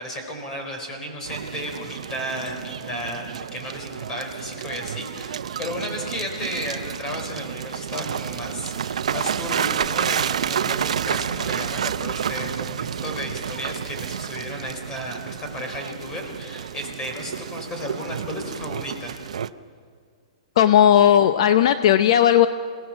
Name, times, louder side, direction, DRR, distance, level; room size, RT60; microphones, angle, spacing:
voice 1, 0.0-19.1, equal, 20° left, 2 dB, 4.5 m, -33 dB
sound 1, 1.3-19.5, right 8 dB, 85° right, 0.7 m, -30 dB
voice 2, 20.6-22.5, left 10 dB, 55° left, 10 dB, 0.7 m, -16 dB
27.5 x 18.0 x 7.4 m, 2.1 s
hypercardioid pair, 160°, 3 cm